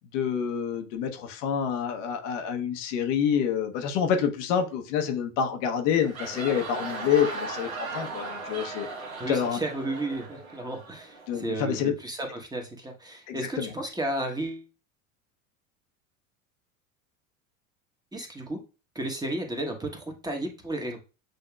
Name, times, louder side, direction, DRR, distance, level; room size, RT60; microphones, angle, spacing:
voice 1, 0.1-8.9 9.3-9.6 11.3-11.9 13.3-13.7, left 8 dB, 65° left, 0.9 m, -27 dB
sound 1, 5.9-11.4, right 3 dB, 90° right, 1.1 m, -37 dB
voice 2, 9.2-14.6 18.1-18.6 18.9-21.0, right 1 dB, 10° right, 1.1 m, -33 dB
7.7 x 2.8 x 2.3 m
hypercardioid pair, 85°, 41 cm